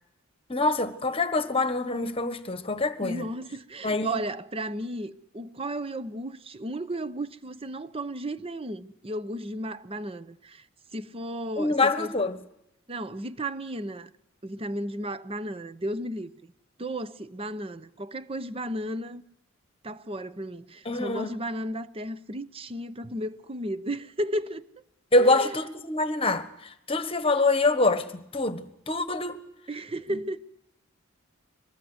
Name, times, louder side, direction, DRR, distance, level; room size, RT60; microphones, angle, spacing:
voice 1, 0.5-3.2 3.8-4.2 11.6-12.4 20.9-21.4 25.1-29.4 30.1-30.2, left 2 dB, 25° left, 1.3 m, -25 dB
voice 2, 3.0-10.7 10.9-12.1 12.9-14.1 14.4-16.5 16.8-19.2 19.8-24.7 25.2-25.6 29.7-30.4, right 1 dB, 25° right, 0.8 m, -34 dB
24.0 x 20.0 x 8.0 m
head